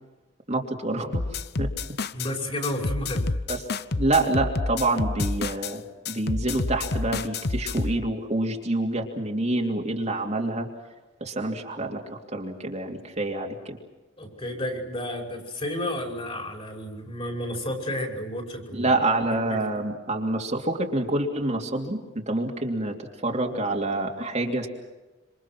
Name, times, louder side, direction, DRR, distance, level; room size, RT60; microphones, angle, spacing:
voice 1, 0.5-1.2 1.6-1.7 3.5-3.6 3.9-10.7 11.2-13.8 18.7-23.0 23.2-24.7, right 2 dB, 35° right, 0 dB, 2.8 m, -27 dB
sound 1, 1.1-2.3 2.6-5.7 6.0-8.0, left 3 dB, 55° left, 0.9 m, -28 dB
voice 2, 2.1-3.3 14.2-18.9 19.7-19.8, left 1 dB, 30° left, 2 dB, 5.6 m, -31 dB
27.5 x 26.5 x 6.1 m, 1.2 s
head